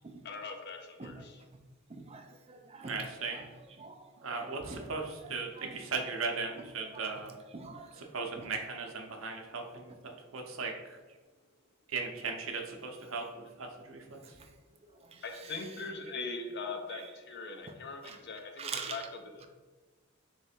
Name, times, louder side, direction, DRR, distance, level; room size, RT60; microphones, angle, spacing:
voice 1, 0.2-1.4 15.2-19.4, left 4 dB, 55° left, 4 dB, 0.5 m, -41 dB
voice 2, 1.9-6.1 6.6-7.2 7.5-8.5 15.0-16.0 16.9-17.1 17.6-17.7 18.0-18.2 18.6-19.1 19.4-19.5, right 4 dB, 30° right, 5 dB, 0.4 m, -46 dB
voice 3, 2.8-3.4 4.2-7.4 8.0-11.0 11.9-14.2, right 4 dB, 70° right, 2 dB, 0.7 m, -38 dB
3.3 x 3.2 x 4.3 m, 1.3 s
head